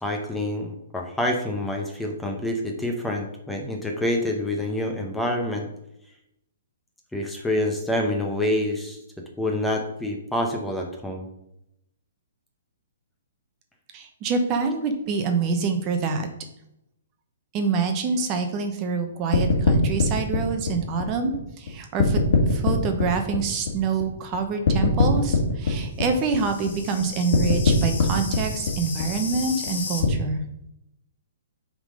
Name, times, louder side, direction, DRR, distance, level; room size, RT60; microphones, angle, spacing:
voice 1, 0.0-5.7 7.1-9.0 9.4-11.3, left 1 dB, 5° left, 1 dB, 0.8 m, -27 dB
voice 2, 13.9-16.3 17.5-30.4, right 4 dB, 30° right, 5 dB, 0.9 m, -26 dB
sound 1, 19.3-21.7 22.0-24.4 24.6-30.1, left 4 dB, 60° left, 1.7 m, -23 dB
7.0 x 3.8 x 5.2 m, 0.82 s
hypercardioid pair, 150°, 0 cm